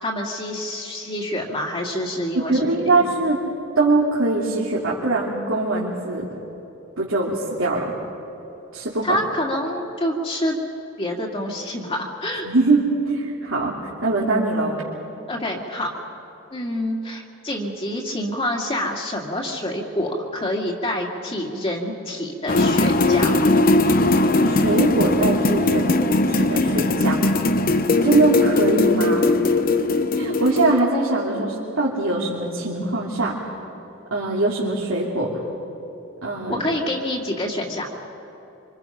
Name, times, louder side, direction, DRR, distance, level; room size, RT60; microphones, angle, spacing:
voice 1, 0.0-3.1 9.0-10.6 11.0-12.5 15.3-15.9 16.5-23.4 36.5-37.9, left 1 dB, 30° left, -2 dB, 2.2 m, -27 dB
voice 2, 2.3-3.4 3.8-6.3 7.0-7.9 8.7-9.2 12.4-14.8 24.4-26.0 26.3-27.3 28.0-29.3 30.2-33.4 34.1-35.3 36.2-36.6, right 2 dB, 80° right, -6 dB, 2.9 m, -22 dB
sound 1, 22.5-30.8, left 2 dB, 45° left, 0.9 m, -19 dB
26.0 x 26.0 x 5.8 m, 2.9 s
head